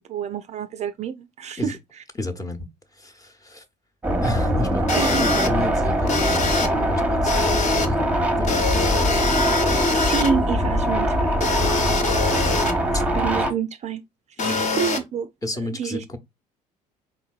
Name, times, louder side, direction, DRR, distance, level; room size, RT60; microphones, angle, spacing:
voice 1, 0.1-2.0 4.9-5.3 9.9-11.4 13.1-14.0 14.4-15.3 15.6-16.0, right 7 dB, 35° right, 0.5 m, -28 dB
voice 2, 2.2-2.6 3.0-3.6 4.2-4.9 5.2-8.1 8.4-8.5 8.7-9.1 11.8-12.0 12.9-13.0 14.4-14.7 15.4-16.2, left 1 dB, 15° left, 1.0 m, -31 dB
sound 1, 4.0-13.5, equal, 5° right, 1.0 m, -22 dB
sound 2, 4.9-5.5 6.1-6.7 7.3-7.9 8.4-10.3 11.4-12.7 14.4-15.0, left 3 dB, 35° left, 1.1 m, -24 dB
4.9 x 3.9 x 2.4 m
figure-of-eight pair, 55°, 21 cm